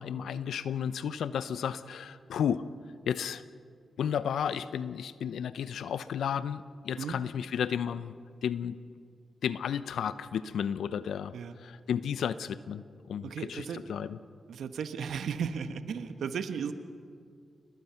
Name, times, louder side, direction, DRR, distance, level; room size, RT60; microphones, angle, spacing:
voice 1, 0.0-2.7 3.1-3.4 4.0-8.1 8.4-8.8 9.4-11.3 11.6-14.2, left 8 dB, 80° left, 15 dB, 0.7 m, -33 dB
voice 2, 13.2-13.8 14.5-16.7, right 7 dB, 80° right, 10 dB, 1.3 m, -35 dB
29.5 x 20.5 x 5.8 m, 2.2 s
supercardioid pair, 40°, 0 cm